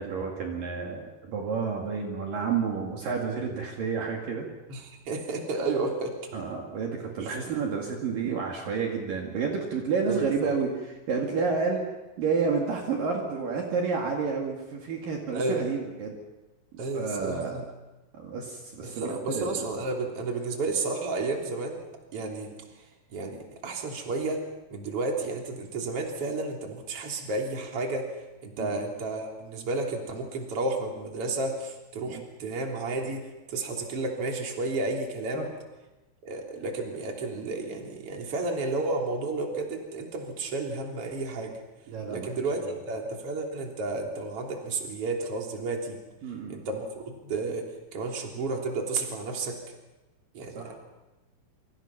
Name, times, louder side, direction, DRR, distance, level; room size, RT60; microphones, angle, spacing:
voice 1, 0.0-4.5 6.3-16.2 16.7-17.7 18.1-19.6 28.6-28.8 32.0-32.2 35.3-35.6 41.9-42.8 46.2-46.6 50.5-50.8, right 5 dB, 60° right, 0 dB, 3.8 m, -30 dB
voice 2, 4.7-6.2 7.2-7.4 10.1-10.3 15.3-15.7 16.8-17.6 18.8-21.8 22.1-22.5 23.1-24.4 24.7-28.1 28.4-35.5 36.2-41.6 42.1-46.0 46.5-49.6 50.3-50.8, right 3 dB, 35° right, 1 dB, 3.9 m, -32 dB
27.0 x 26.0 x 5.9 m, 1.1 s
omnidirectional pair, 4.8 m